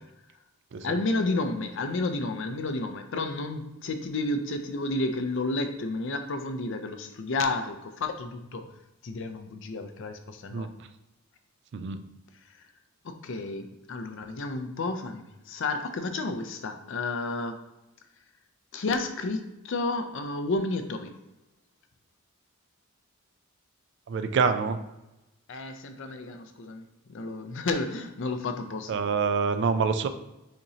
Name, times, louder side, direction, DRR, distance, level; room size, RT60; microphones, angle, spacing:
voice 1, 0.8-8.6 9.0-10.7 13.0-17.6 18.7-21.1 25.5-29.0, left 2 dB, 60° left, 7 dB, 0.5 m, -31 dB
voice 2, 24.1-24.8 28.9-30.1, right 5 dB, 55° right, 9 dB, 0.3 m, -26 dB
6.4 x 3.0 x 2.8 m, 0.96 s
head